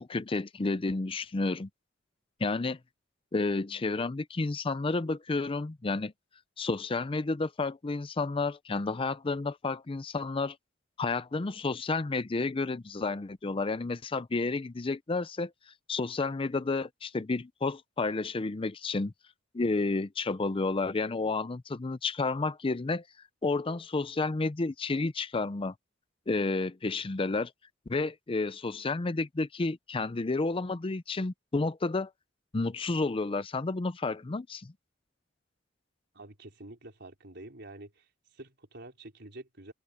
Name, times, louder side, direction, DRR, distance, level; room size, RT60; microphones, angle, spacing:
voice 1, 0.0-1.7 2.4-2.8 3.3-6.1 6.6-10.6 11.0-15.5 15.9-19.1 19.5-23.0 23.4-25.7 26.3-27.5 27.9-32.1 32.5-34.7, left 3 dB, 30° left, 0.5 m, -31 dB
voice 2, 36.1-38.1 38.3-39.7, right 2 dB, 60° right, 4.3 m, -47 dB
open air
head